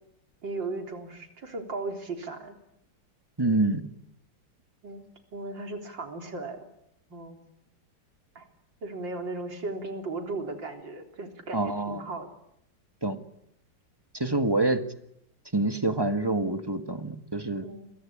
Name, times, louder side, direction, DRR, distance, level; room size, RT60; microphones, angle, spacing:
voice 1, 0.4-2.5 4.8-5.0 5.3-6.6 7.1-7.4 8.4-8.5 8.8-12.3 17.6-17.9, right 3 dB, 85° right, 4 dB, 4.3 m, -36 dB
voice 2, 3.4-3.8 11.5-12.1 13.0-13.2 14.1-14.8 15.5-17.7, right 2 dB, 15° right, 8 dB, 1.6 m, -26 dB
29.0 x 23.0 x 8.7 m, 0.80 s
omnidirectional pair, 2.0 m